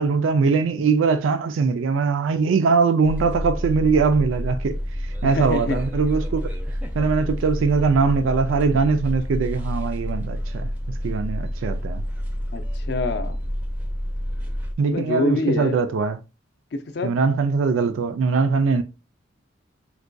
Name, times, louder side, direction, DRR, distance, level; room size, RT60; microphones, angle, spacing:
voice 1, 0.0-4.8 5.0-6.4 7.0-12.0 14.8-16.2 17.0-18.8, right 4 dB, 90° right, 0.4 m, -21 dB
sound 1, 3.0-14.7, equal, 10° right, 0.4 m, -29 dB
voice 2, 5.2-5.8 12.5-13.4 14.8-15.8 16.7-17.1, left 2 dB, 55° left, 0.4 m, -25 dB
4.6 x 2.2 x 2.5 m
head